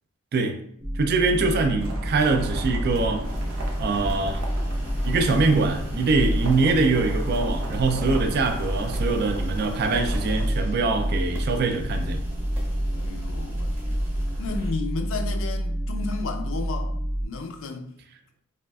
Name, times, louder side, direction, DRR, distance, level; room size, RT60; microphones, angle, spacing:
voice 1, 0.3-0.6 0.9-3.3 3.8-4.5 5.0-12.2, right 3 dB, 50° right, 0.3 m, -23 dB
sound 1, 0.8-17.2, right 1 dB, 70° right, 1.0 m, -29 dB
sound 2, 1.8-10.4, right 1 dB, 85° right, 0.7 m, -36 dB
sound 3, 3.2-14.7, equal, 10° right, 0.8 m, -32 dB
voice 2, 12.9-14.0 14.4-16.9 17.2-17.9, left 4 dB, 65° left, 0.4 m, -33 dB
4.8 x 2.4 x 2.3 m
head